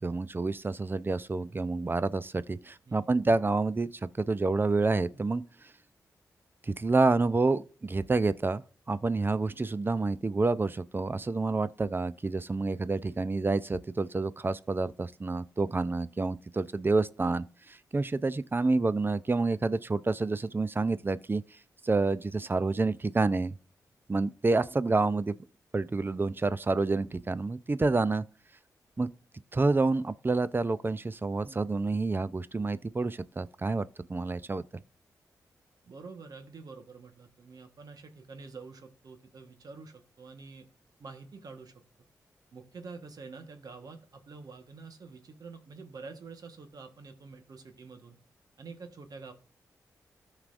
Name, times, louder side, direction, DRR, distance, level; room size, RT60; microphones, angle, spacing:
voice 1, 0.0-5.4 6.6-21.4 21.8-23.5 24.1-25.3 25.7-28.2 29.0-29.1 29.5-34.6, right 3 dB, 30° right, 0.5 m, -28 dB
voice 2, 35.8-40.6 41.0-41.7 42.5-48.2 48.6-49.3, right 4 dB, 65° right, 1.3 m, -47 dB
14.0 x 4.9 x 2.6 m
supercardioid pair, 45°, 7 cm